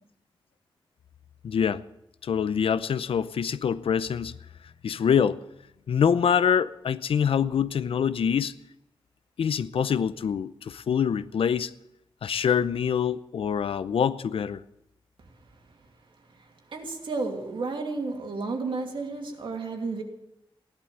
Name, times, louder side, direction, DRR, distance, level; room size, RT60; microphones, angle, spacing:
voice 1, 1.4-1.8 2.2-4.4 4.8-5.4 5.9-8.5 9.4-11.7 12.2-14.6, left 7 dB, 90° left, 0.6 m, -25 dB
voice 2, 16.4-20.0, right 3 dB, 65° right, 2.6 m, -32 dB
16.0 x 11.5 x 7.5 m
wide cardioid pair, 165°, 9 cm